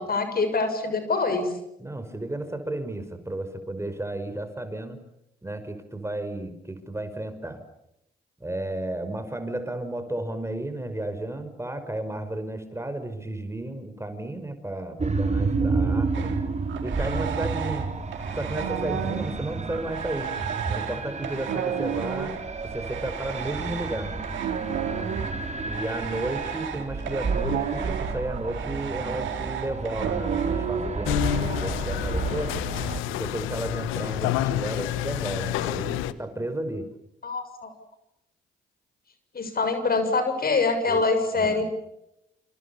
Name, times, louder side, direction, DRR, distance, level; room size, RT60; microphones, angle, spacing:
voice 1, 0.0-1.5 37.2-37.7 39.3-41.6, left 3 dB, 50° left, 9 dB, 6.9 m, -24 dB
voice 2, 1.8-5.0 5.4-7.6 8.4-16.3 16.8-17.9 18.3-20.3 20.7-22.4 22.7-24.1 25.7-32.5 33.1-36.9 40.9-41.0 41.3-41.6, right 1 dB, 15° right, 9 dB, 5.4 m, -33 dB
sound 1, 15.0-33.0, right 4 dB, 35° right, 4.6 m, -31 dB
sound 2, 16.1-17.9 18.1-30.9, right 8 dB, 70° right, 4.2 m, -32 dB
sound 3, 31.1-36.1, left 14 dB, 80° left, 1.3 m, -29 dB
29.0 x 27.5 x 7.2 m, 0.83 s
hypercardioid pair, 50°, 20 cm